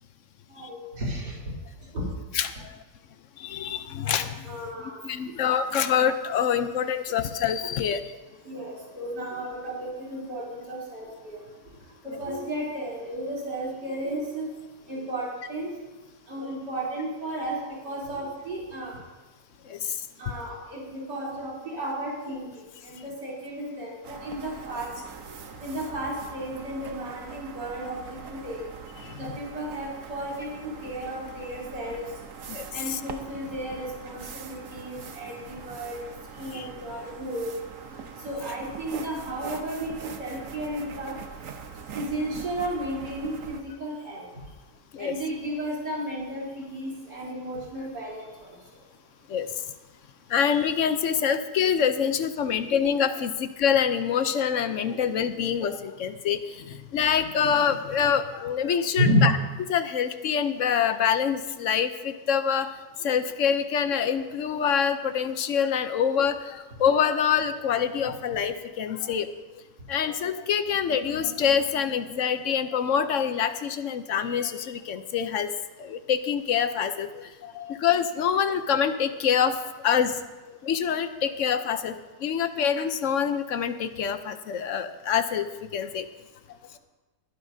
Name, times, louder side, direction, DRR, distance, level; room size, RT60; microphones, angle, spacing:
voice 1, 0.5-1.4 1.9-2.0 4.0-4.1 4.4-5.0 5.3-5.4 8.4-11.4 12.0-14.5 14.9-15.7 16.3-17.6 17.8-19.0 20.2-22.5 22.8-24.9 25.6-28.0 28.3-28.6 29.2-32.0 32.7-36.0 36.4-37.5 38.2-41.2 41.9-44.3 45.0-48.5 59.0-59.3, equal, 75° right, -6 dB, 4.1 m, -32 dB
voice 2, 2.3-2.8 3.4-4.6 5.0-8.1 19.7-20.1 29.0-29.2 32.5-33.0 36.5-36.7 44.9-45.2 49.3-49.5 50.3-59.3 59.7-62.7 63.0-69.3 69.9-75.5 75.8-79.6 79.8-80.2 80.5-86.1, left 7 dB, 60° left, 10 dB, 0.8 m, -26 dB
sound 1, 24.0-43.6, right 6 dB, 55° right, 1.1 m, -42 dB
21.5 x 11.0 x 2.7 m, 1.2 s
omnidirectional pair, 1.8 m